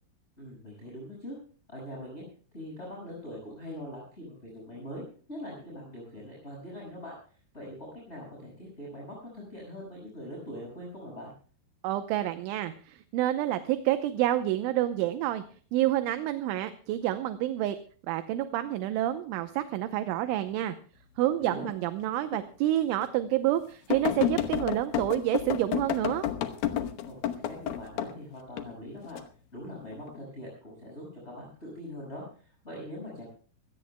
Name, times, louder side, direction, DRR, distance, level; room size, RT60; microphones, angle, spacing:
voice 1, 0.4-1.4 1.7-2.2 2.5-7.2 7.5-11.3 21.4-21.7 27.0-27.2 27.5-29.2 29.5-33.3, equal, 10° left, -3 dB, 6.0 m, -42 dB
voice 2, 11.8-15.4 15.7-17.8 18.1-20.7 21.2-26.3, right 13 dB, 80° right, 9 dB, 3.1 m, -28 dB
sound 1, 22.3-22.4 23.0-23.1 23.9-28.1 28.6-29.2 29.8-30.2, left 11 dB, 90° left, 2.0 m, -30 dB
24.0 x 17.5 x 2.2 m, 0.42 s
omnidirectional pair, 5.7 m